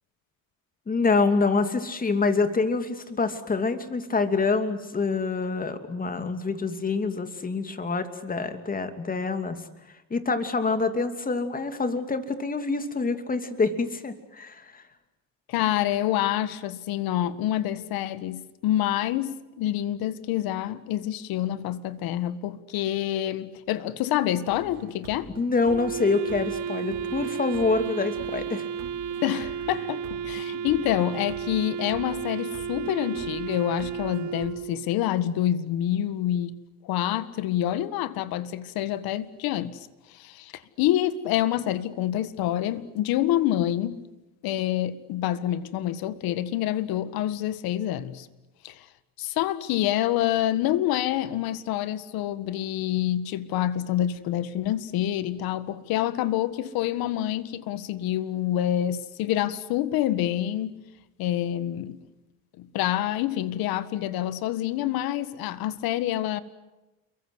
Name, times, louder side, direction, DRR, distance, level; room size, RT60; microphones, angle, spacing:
voice 1, 0.9-9.6 10.1-14.8 25.4-28.6, left 4 dB, 25° left, 2.8 m, -26 dB
voice 2, 15.5-25.3 29.2-36.5 36.8-44.0 44.4-48.3 48.6-48.9 49.2-60.8 61.2-62.0 62.6-66.4, left 12 dB, 75° left, 1.8 m, -27 dB
sound 1, 24.5-34.5, right 7 dB, 75° right, 5.0 m, -45 dB
Wind instrument woodwind instrument, 25.7-34.9, right 7 dB, 50° right, 1.5 m, -33 dB
29.0 x 23.5 x 8.0 m
cardioid pair, 115°, 36 cm